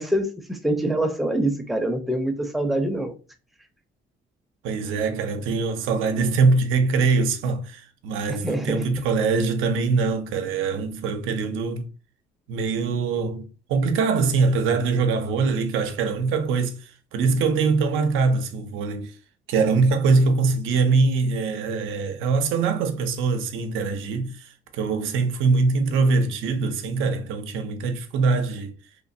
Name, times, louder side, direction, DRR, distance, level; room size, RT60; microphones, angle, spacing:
voice 1, 0.0-3.1 8.4-8.9, right 1 dB, ahead, 0.5 m, -25 dB
voice 2, 4.6-11.9 12.5-19.1 19.5-28.7, right 4 dB, 90° right, 0.5 m, -23 dB
3.0 x 2.1 x 2.6 m
cardioid pair, 90°, 20 cm